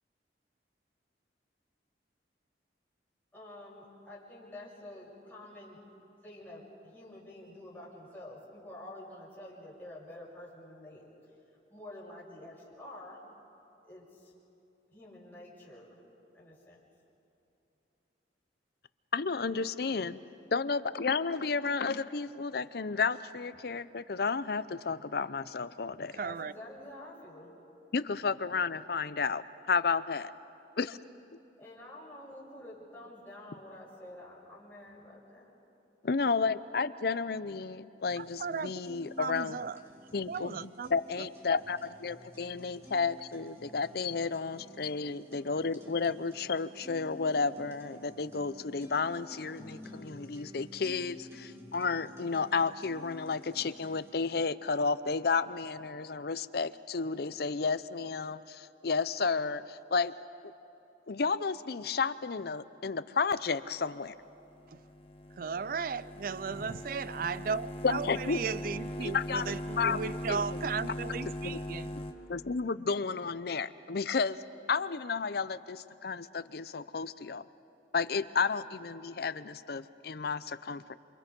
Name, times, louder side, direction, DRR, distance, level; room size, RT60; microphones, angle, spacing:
voice 1, 3.3-5.8 6.2-11.0 11.7-13.2 13.8-14.3 14.9-16.0 16.3-16.8 26.1-27.5 31.6-35.5 36.0-36.1 36.4-36.5, left 1 dB, 10° left, 6.5 m, -48 dB
voice 2, 19.1-20.2 20.5-26.1 27.9-30.3 30.8-30.9 36.0-39.6 40.1-60.1 61.1-64.1 67.8-68.4 69.0-70.0 70.3-70.4 71.4-71.6 72.3-74.4 74.7-77.4 77.9-81.0, left 4 dB, 60° left, 0.6 m, -32 dB
voice 3, 26.2-26.5 38.2-38.8 39.2-39.8 40.3-40.9 41.2-41.3 65.4-71.9, right 5 dB, 50° right, 0.4 m, -36 dB
sound 1, 38.1-54.1, left 1 dB, 15° right, 2.2 m, -52 dB
sound 2, 64.4-72.1, left 1 dB, 35° left, 1.3 m, -40 dB
28.5 x 26.5 x 5.3 m
head